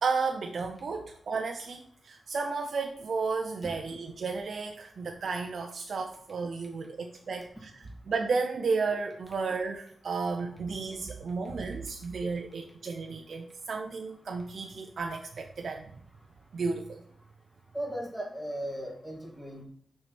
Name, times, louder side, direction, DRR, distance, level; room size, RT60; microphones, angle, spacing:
voice 1, 0.0-15.9 16.5-17.0, right 4 dB, 65° right, 3 dB, 0.6 m, -33 dB
voice 2, 17.7-19.6, right 1 dB, 5° left, -2 dB, 2.1 m, -37 dB
6.1 x 4.7 x 4.3 m, 0.65 s
wide cardioid pair, 105°, 0 cm